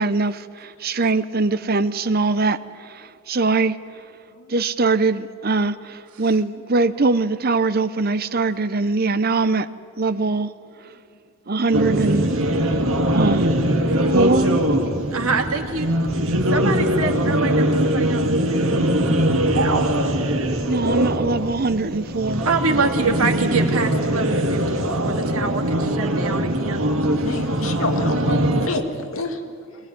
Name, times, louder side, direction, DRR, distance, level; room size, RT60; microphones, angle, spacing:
voice 1, 0.0-3.8 4.5-9.7 10.0-10.5 11.5-12.3 12.6-12.8 13.1-13.5 14.1-14.8 20.6-22.5, right 3 dB, 45° right, 0.7 m, -22 dB
sound 1, 11.7-28.7, right 1 dB, 70° right, 2.1 m, -21 dB
voice 2, 13.9-14.3 15.1-16.1 16.5-19.3 19.5-19.8 22.5-26.9, right 4 dB, 90° right, 2.3 m, -26 dB
voice 3, 27.2-29.9, left 2 dB, 75° left, 2.1 m, -29 dB
21.5 x 20.0 x 9.5 m
head